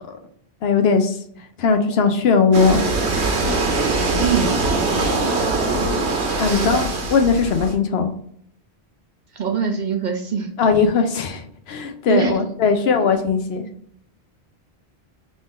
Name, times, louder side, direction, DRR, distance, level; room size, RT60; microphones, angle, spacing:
voice 1, 0.6-1.2 1.6-2.8 6.4-8.1 10.6-13.6, left 5 dB, 75° left, 6 dB, 0.9 m, -19 dB
sound 1, 2.5-7.7, right 3 dB, 90° right, 1.2 m, -22 dB
voice 2, 4.2-4.6 6.5-6.9 9.3-10.5 12.1-12.4, right 6 dB, 55° right, 4 dB, 0.6 m, -23 dB
3.7 x 2.5 x 3.7 m, 0.65 s
omnidirectional pair, 1.1 m